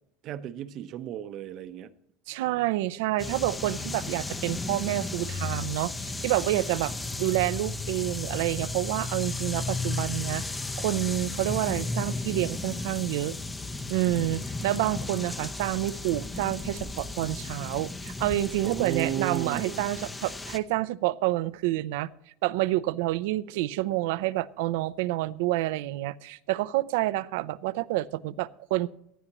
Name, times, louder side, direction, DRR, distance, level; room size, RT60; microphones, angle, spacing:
voice 1, 0.2-1.9 12.3-12.5 18.6-19.9, right 10 dB, 45° right, 0.8 m, -34 dB
voice 2, 2.3-6.9 7.2-10.4 10.8-13.4 13.9-22.1 22.4-28.9, right 16 dB, 80° right, 0.5 m, -28 dB
sound 1, 3.2-20.6, left 3 dB, 10° left, 0.6 m, -34 dB
18.5 x 12.0 x 3.0 m
cardioid pair, 150°, 0 cm